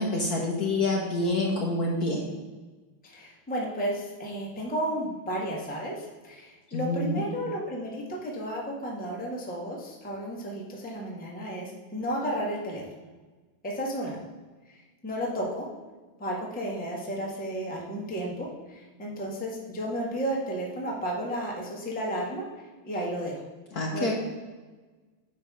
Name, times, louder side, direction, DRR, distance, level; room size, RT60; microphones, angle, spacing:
voice 1, 0.0-2.2 6.7-7.2 23.7-24.1, left 2 dB, 55° left, -1 dB, 1.3 m, -27 dB
voice 2, 3.0-12.8 13.6-14.2 15.0-15.7 16.2-22.4 22.8-23.4 23.9-24.1, equal, 5° left, -3 dB, 1.0 m, -33 dB
8.6 x 3.2 x 6.0 m, 1.3 s
omnidirectional pair, 2.2 m